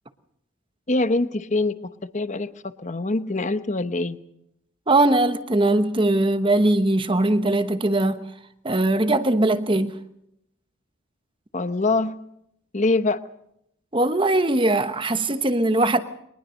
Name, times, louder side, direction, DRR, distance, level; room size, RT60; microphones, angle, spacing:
voice 1, 0.9-1.7 2.1-2.5 2.8-4.2 11.5-12.2 12.7-13.2, left 2 dB, 35° left, 0.9 m, -23 dB
voice 2, 4.9-8.2 8.6-10.0 13.9-16.0, right 2 dB, 25° right, 1.0 m, -20 dB
23.0 x 19.5 x 6.4 m
head